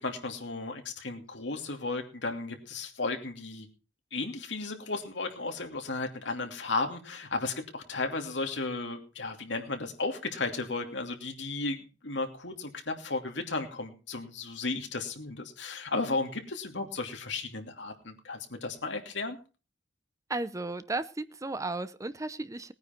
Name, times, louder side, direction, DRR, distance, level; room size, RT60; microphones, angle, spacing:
voice 1, 0.0-3.7 4.1-19.4, left 3 dB, 80° left, 4 dB, 2.8 m, -34 dB
voice 2, 20.3-22.7, right 2 dB, 20° right, 14 dB, 0.7 m, -34 dB
19.5 x 9.5 x 4.5 m, 0.34 s
head